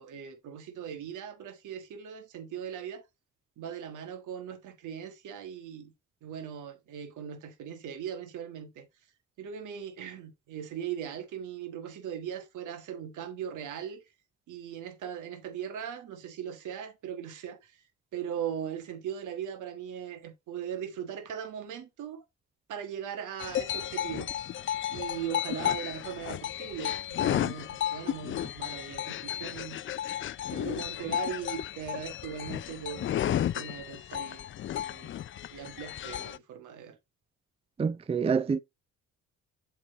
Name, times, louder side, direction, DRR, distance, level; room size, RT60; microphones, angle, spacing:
voice 1, 0.0-3.0 3.6-5.9 6.2-8.9 9.4-14.0 14.5-17.8 18.1-22.2 22.7-24.3 24.9-29.8 30.5-35.1 35.5-37.0, right 8 dB, 80° right, 1.6 m, -39 dB
sound 1, 23.4-36.4, left 11 dB, 45° left, 0.4 m, -33 dB
voice 2, 37.8-38.6, right 5 dB, 20° right, 0.4 m, -27 dB
7.4 x 3.7 x 4.1 m
cardioid pair, 90°, 30 cm